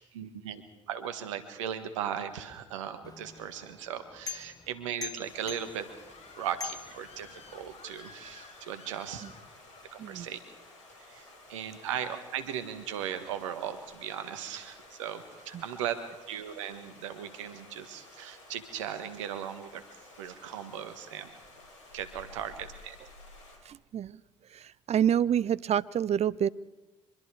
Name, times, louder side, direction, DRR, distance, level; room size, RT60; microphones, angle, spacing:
voice 1, 0.1-0.6 0.9-5.9 6.4-9.3 9.9-10.4 11.1-16.0 16.3-19.8 20.2-21.3 21.9-23.0, right 9 dB, 80° right, 10 dB, 1.6 m, -37 dB
sound 1, 3.0-7.7, left 7 dB, 25° left, 2.1 m, -45 dB
sound 2, 5.2-23.6, left 2 dB, 85° left, 4.2 m, -54 dB
Screaming, 5.4-9.9, left 4 dB, 45° left, 2.5 m, -54 dB
voice 2, 23.7-24.2 24.5-26.5, right 9 dB, 45° right, 20 dB, 0.6 m, -28 dB
24.5 x 23.0 x 4.9 m, 1.1 s
hypercardioid pair, 55°, 16 cm